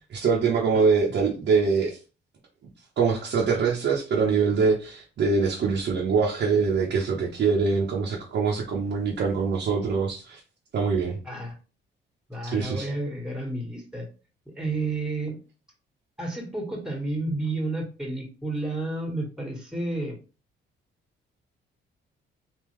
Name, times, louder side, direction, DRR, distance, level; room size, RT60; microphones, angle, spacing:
voice 1, 0.1-2.0 3.0-10.4 10.7-11.2 12.4-12.9, right 5 dB, 60° right, -3 dB, 0.9 m, -24 dB
voice 2, 11.2-11.6 12.3-14.1 14.5-15.4 16.2-20.2, right 2 dB, 5° right, 1 dB, 1.5 m, -31 dB
3.6 x 2.7 x 3.2 m, 0.34 s
cardioid pair, 90°, 20 cm